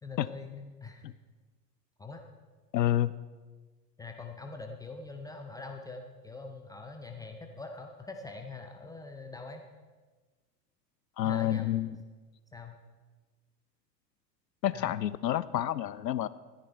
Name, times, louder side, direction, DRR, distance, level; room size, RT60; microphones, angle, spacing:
voice 1, 0.0-1.1 2.0-2.2 4.0-9.6 11.2-11.8 12.5-12.8 14.7-15.0, left 3 dB, 10° left, 3 dB, 0.5 m, -43 dB
voice 2, 2.7-3.1 11.2-11.9 14.6-16.3, left 12 dB, 80° left, 18 dB, 0.5 m, -29 dB
13.5 x 9.9 x 4.4 m, 1.3 s
figure-of-eight pair, 90°, 50 cm